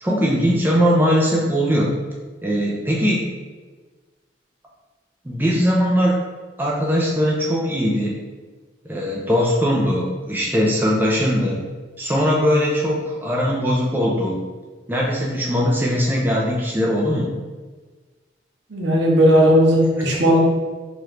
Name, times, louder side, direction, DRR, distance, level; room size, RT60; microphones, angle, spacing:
voice 1, 0.0-1.9 2.4-3.2 5.2-6.1 6.6-8.2 8.8-11.6 12.0-14.4 14.9-17.3, equal, 10° right, -4 dB, 0.5 m, -20 dB
voice 2, 18.7-20.4, equal, 80° right, -2 dB, 0.9 m, -15 dB
3.7 x 3.0 x 3.2 m, 1.3 s
head